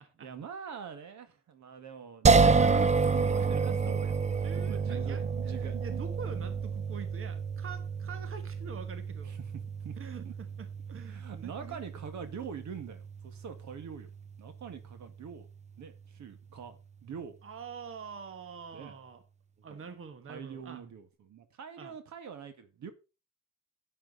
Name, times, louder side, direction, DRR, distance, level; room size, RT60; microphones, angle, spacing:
voice 1, 0.2-6.0 9.2-9.4 9.8-10.3 10.9-14.1 14.4-15.5 15.8-17.4 18.7-18.9 19.7-19.8 20.3-22.9, right 7 dB, 70° right, 2.0 m, -44 dB
sound 1, 2.2-15.3, right 4 dB, 25° right, 0.6 m, -30 dB
voice 2, 4.4-9.3 10.0-11.8 17.4-19.2 19.6-20.8 21.8-21.9, right 5 dB, 45° right, 1.4 m, -45 dB
11.0 x 8.8 x 4.1 m
cardioid pair, 90°, 30 cm